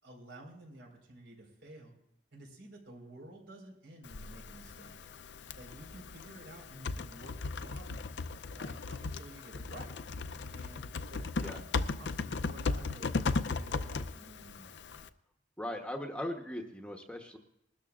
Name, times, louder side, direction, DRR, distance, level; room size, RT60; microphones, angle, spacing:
voice 1, 0.0-1.9 2.3-4.9 5.6-8.1 8.5-10.0 10.5-14.8, right 1 dB, 75° right, 1 dB, 4.3 m, -51 dB
Typing, 4.0-15.1, left 3 dB, 65° left, 0.5 m, -37 dB
voice 2, 15.6-17.4, left 1 dB, 5° left, 3 dB, 0.9 m, -39 dB
21.0 x 13.0 x 2.4 m, 0.79 s
head